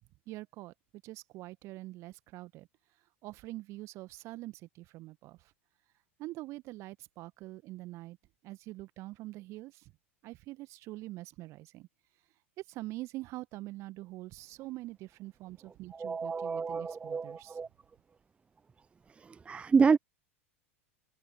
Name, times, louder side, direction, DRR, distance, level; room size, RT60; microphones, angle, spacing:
voice 1, 0.3-0.7 1.0-2.7 3.2-5.5 6.2-8.2 8.4-9.9 10.2-11.9 12.7-17.6, right 18 dB, 40° right, 1.6 m, -44 dB
voice 2, 15.9-17.7 19.2-20.0, right 5 dB, 15° right, 0.6 m, -28 dB
figure-of-eight pair, 85°, 7 cm